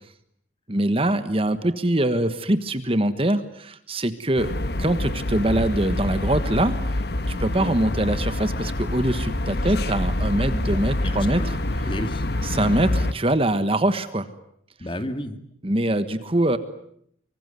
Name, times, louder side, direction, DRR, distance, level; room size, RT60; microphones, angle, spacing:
voice 1, 0.7-4.5 4.8-6.8 7.3-11.6 12.4-14.3 15.6-16.6, right 1 dB, 30° right, 11 dB, 1.4 m, -23 dB
sound 1, 4.4-13.1, left 1 dB, 55° left, 1.3 m, -26 dB
voice 2, 10.5-11.5 11.8-12.3 14.8-15.4, left 1 dB, 25° left, 8 dB, 2.2 m, -33 dB
25.0 x 24.0 x 9.4 m, 0.71 s
head